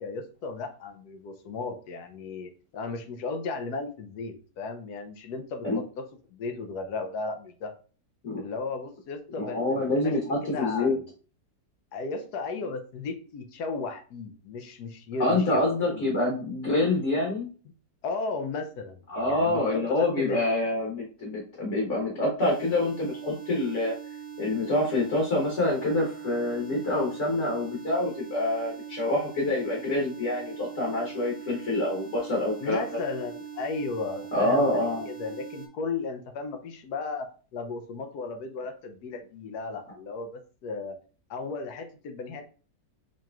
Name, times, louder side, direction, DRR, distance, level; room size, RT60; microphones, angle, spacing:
voice 1, 0.0-6.0 6.3-7.7 8.4-10.2 10.4-11.1 11.9-16.1 18.0-20.4 32.6-41.0 41.3-42.4, left 4 dB, 70° left, 7 dB, 1.0 m, -35 dB
voice 2, 9.4-10.9 15.2-17.5 19.1-23.9 24.4-32.8 34.3-35.1, left 2 dB, 50° left, -3 dB, 1.3 m, -26 dB
sound 1, 22.4-35.7, right 8 dB, 65° right, 0.6 m, -42 dB
5.0 x 3.0 x 2.3 m, 0.38 s
omnidirectional pair, 1.9 m